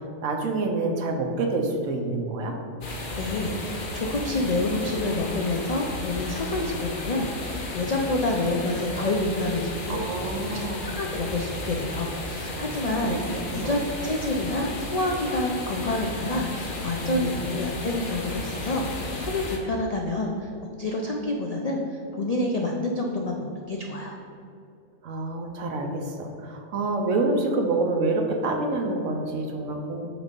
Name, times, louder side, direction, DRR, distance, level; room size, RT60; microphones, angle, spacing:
voice 1, 0.2-2.5 9.9-10.9 13.0-13.2 13.5-13.8 17.0-17.6 25.0-30.1, right 2 dB, 70° right, 3 dB, 1.1 m, -27 dB
sound 1, 2.8-19.6, left 2 dB, 45° left, 0.9 m, -34 dB
voice 2, 2.9-10.1 10.5-13.2 13.5-24.2, left 2 dB, 65° left, 0 dB, 0.3 m, -28 dB
6.0 x 4.0 x 5.2 m, 2.6 s
omnidirectional pair, 1.4 m